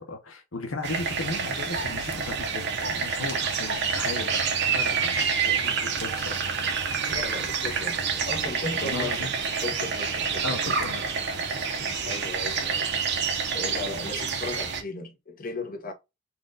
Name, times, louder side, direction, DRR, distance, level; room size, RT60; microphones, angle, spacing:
voice 1, 0.0-4.4 4.7-6.4 8.8-9.3 10.4-11.0 11.4-12.0, left 2 dB, 80° left, 0.9 m, -36 dB
sound 1, 0.8-14.8, right 5 dB, 60° right, 0.9 m, -28 dB
voice 2, 7.1-9.3 9.6-10.8 12.0-12.9 13.5-15.9, left 2 dB, 45° left, 1.1 m, -36 dB
4.5 x 2.5 x 3.7 m
head